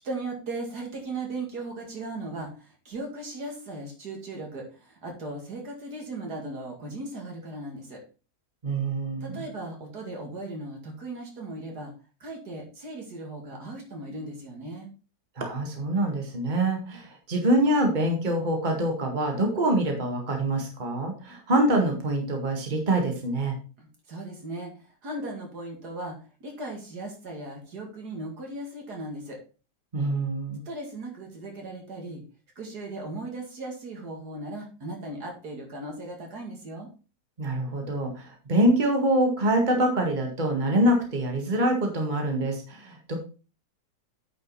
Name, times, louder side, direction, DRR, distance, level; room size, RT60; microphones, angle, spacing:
voice 1, 0.0-8.0 9.2-11.9 12.2-14.9 23.8-24.7 25.0-26.1 26.4-29.4 30.7-32.2 32.6-36.9, right 2 dB, 70° right, 1 dB, 2.7 m, -37 dB
voice 2, 8.6-9.5 15.4-23.5 29.9-30.6 37.4-43.2, right 1 dB, 25° right, 1 dB, 1.9 m, -25 dB
9.4 x 5.3 x 4.1 m, 0.34 s
omnidirectional pair, 1.8 m